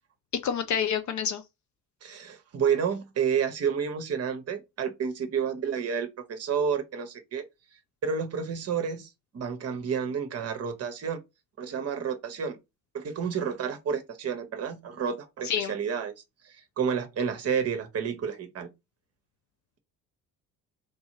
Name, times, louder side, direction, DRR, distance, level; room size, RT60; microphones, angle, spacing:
voice 1, 0.4-1.4 15.4-15.7, left 8 dB, 40° left, 0.5 m, -28 dB
voice 2, 2.0-7.4 8.0-11.2 11.6-12.6 12.9-16.1 16.4-18.7, right 7 dB, 30° right, 0.9 m, -30 dB
3.7 x 2.7 x 2.7 m
figure-of-eight pair, 55°, 47 cm